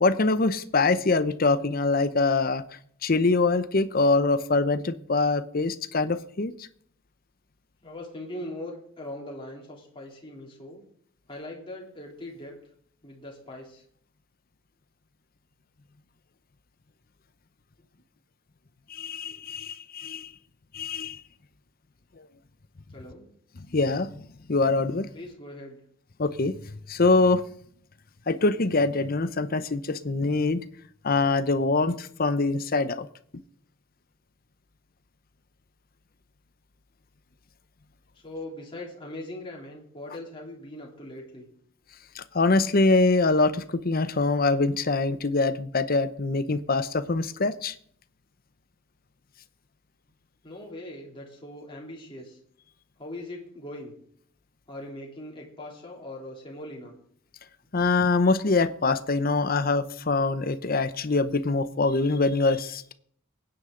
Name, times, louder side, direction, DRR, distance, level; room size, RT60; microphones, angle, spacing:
voice 1, 0.0-2.6 3.0-6.7 18.9-20.3 20.7-21.2 22.2-22.3 23.7-24.1 24.5-25.1 26.2-26.5 26.9-27.4 28.3-30.6 31.0-33.1 42.1-47.7 57.7-62.9, left 3 dB, 45° left, 13 dB, 0.7 m, -24 dB
voice 2, 7.8-10.8 11.3-12.5 13.0-13.8 22.9-23.3 25.1-25.8 38.2-41.5 50.4-52.4 53.0-53.9 54.7-56.9, left 1 dB, 25° left, -2 dB, 3.1 m, -40 dB
22.5 x 9.8 x 3.8 m, 0.63 s
head